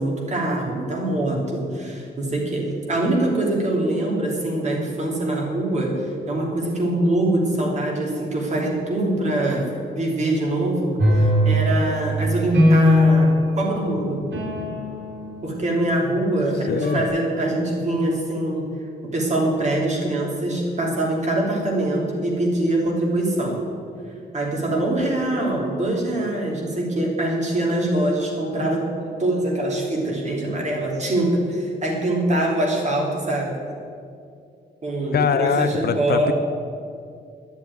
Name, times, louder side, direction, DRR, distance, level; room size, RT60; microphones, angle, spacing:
voice 1, 0.0-14.2 15.4-18.7 19.0-23.6 24.3-28.9 29.2-33.5 34.8-36.3, right 1 dB, 40° right, -1 dB, 2.9 m, -23 dB
sound 1, 11.0-16.1 16.8-17.1, left 1 dB, 75° right, 3.3 m, -20 dB
voice 2, 16.7-17.0 35.1-36.3, left 7 dB, 60° left, 10 dB, 0.6 m, -22 dB
11.5 x 7.3 x 9.3 m, 2.4 s
wide cardioid pair, 155°, 19 cm